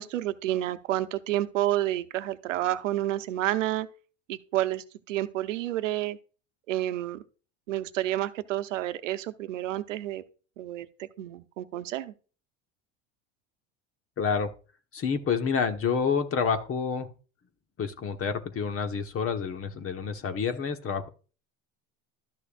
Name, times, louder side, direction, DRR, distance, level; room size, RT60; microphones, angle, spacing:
voice 1, 0.0-3.9 4.3-6.2 6.7-7.2 7.7-10.2 10.6-12.1, right 14 dB, 85° right, 0.9 m, -30 dB
voice 2, 14.2-14.5 14.9-17.1 17.8-21.1, left 6 dB, 35° left, 1.3 m, -28 dB
12.5 x 6.4 x 2.5 m
hypercardioid pair, 80°, 37 cm